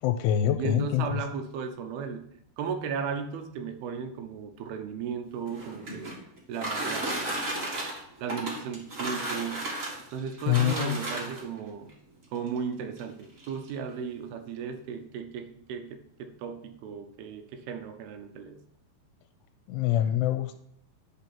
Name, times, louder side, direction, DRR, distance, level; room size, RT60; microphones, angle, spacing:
voice 1, 0.0-1.2 10.5-11.0 19.7-20.6, left 11 dB, 85° left, 8 dB, 2.6 m, -25 dB
voice 2, 0.6-2.2 2.6-6.1 6.5-7.9 8.2-9.6 10.1-11.9 12.3-18.6 20.0-20.2, right 6 dB, 75° right, 7 dB, 2.6 m, -36 dB
sound 1, 5.4-11.6 12.5-12.6 13.0-13.1 13.4-13.8, right 1 dB, 55° right, 0.9 m, -34 dB
10.5 x 3.7 x 5.9 m, 0.71 s
omnidirectional pair, 4.8 m